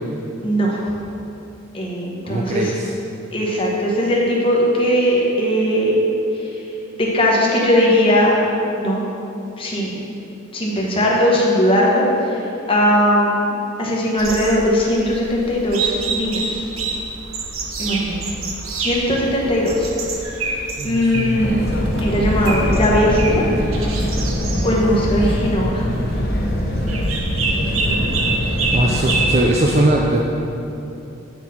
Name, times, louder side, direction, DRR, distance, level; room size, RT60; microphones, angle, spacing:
voice 1, 0.4-0.8 1.7-2.7 3.3-6.0 6.3-6.6 7.0-8.3 8.8-9.1 9.6-10.0 10.5-12.4 12.7-13.5 13.8-16.6 17.8-18.2 18.7-21.7 22.0-23.5 24.6-25.8 27.8-28.1 28.4-28.5, equal, 25° left, -3 dB, 1.0 m, -19 dB
voice 2, 2.2-2.9 20.8-21.4 28.7-30.2, right 1 dB, 30° right, -1 dB, 0.4 m, -20 dB
sound 1, 14.2-29.6, right 3 dB, 85° right, 0.7 m, -27 dB
sound 2, 21.4-29.4, equal, 50° left, 0.7 m, -22 dB
7.9 x 4.2 x 4.2 m, 2.8 s
head